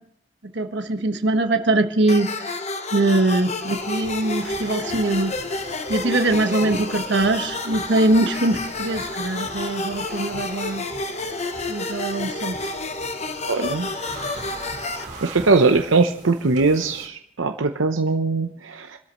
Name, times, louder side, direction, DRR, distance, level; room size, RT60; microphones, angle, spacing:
voice 1, 0.5-2.5 2.9-5.3 5.9-10.8 11.7-12.6, right 2 dB, 60° right, 6 dB, 1.3 m, -22 dB
sound 1, 2.1-15.0, left 3 dB, 35° left, 0.9 m, -30 dB
sound 2, 3.4-17.1, right 2 dB, 40° right, 4.3 m, -40 dB
voice 2, 13.5-13.9 15.2-19.0, right 3 dB, 80° right, 5 dB, 0.8 m, -21 dB
27.0 x 13.0 x 3.1 m, 0.66 s
head